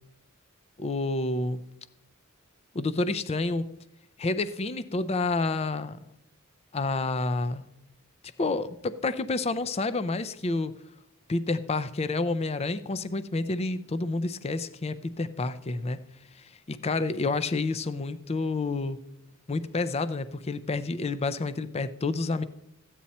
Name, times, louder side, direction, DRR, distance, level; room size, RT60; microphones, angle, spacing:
voice 1, 0.8-1.6 2.7-3.7 4.2-6.0 6.7-7.6 8.4-10.7 11.3-16.0 16.4-19.0 19.5-22.4, left 3 dB, 30° left, 14 dB, 0.5 m, -29 dB
14.0 x 9.0 x 4.2 m, 0.82 s
head